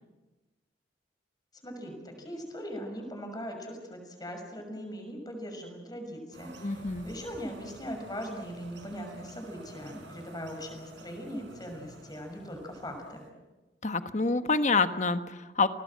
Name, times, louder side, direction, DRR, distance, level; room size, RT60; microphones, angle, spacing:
voice 1, 1.6-13.2, equal, 20° left, 4 dB, 6.1 m, -40 dB
sound 1, 6.3-13.3, right 1 dB, 85° right, 4.5 m, -50 dB
voice 2, 6.6-7.1 13.8-15.7, left 3 dB, 40° left, 9 dB, 1.3 m, -27 dB
29.5 x 19.5 x 7.6 m, 1.2 s
head